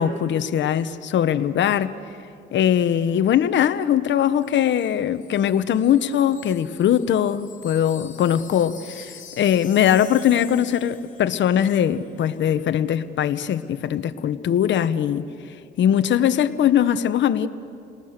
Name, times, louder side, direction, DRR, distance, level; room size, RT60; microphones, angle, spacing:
voice 1, 0.0-1.9 2.5-15.2 15.8-17.5, left 9 dB, 65° left, 1.0 m, -21 dB
Wind chime, 4.4-11.7 11.9-12.1, left 6 dB, 40° left, 3.7 m, -45 dB
29.5 x 20.0 x 6.7 m
cardioid pair, 90°, 20 cm